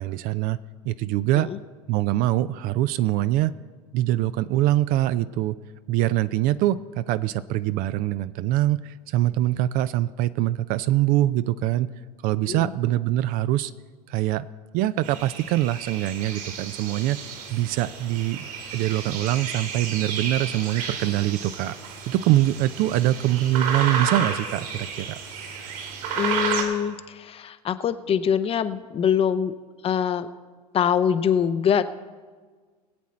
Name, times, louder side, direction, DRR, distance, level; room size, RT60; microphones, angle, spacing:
voice 1, 0.0-1.5 1.9-3.5 3.9-5.6 5.9-11.9 12.2-13.7 14.1-14.5 14.7-17.2 17.5-21.7 22.1-25.2, right 14 dB, 45° right, 15 dB, 0.5 m, -24 dB
sound 1, 15.0-26.6, right 6 dB, 65° right, 2.7 m, -32 dB
voice 2, 26.2-29.5 29.8-30.3 30.7-31.8, left 8 dB, 30° left, 12 dB, 0.7 m, -24 dB
20.5 x 8.4 x 4.3 m, 1.5 s
hypercardioid pair, 85°, 20 cm